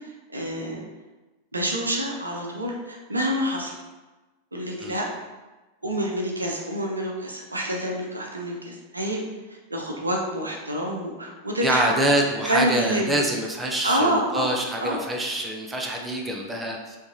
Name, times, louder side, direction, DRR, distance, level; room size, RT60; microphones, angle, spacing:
voice 1, 0.3-0.8 1.5-3.8 4.5-5.0 5.8-9.2 9.7-11.9 12.5-13.2 13.8-14.5 14.8-15.0, right 1 dB, 80° right, 0 dB, 0.6 m, -27 dB
voice 2, 11.6-17.0, right 1 dB, 10° right, 0 dB, 0.5 m, -25 dB
4.6 x 2.6 x 2.8 m, 1.2 s
figure-of-eight pair, 90°, 0 cm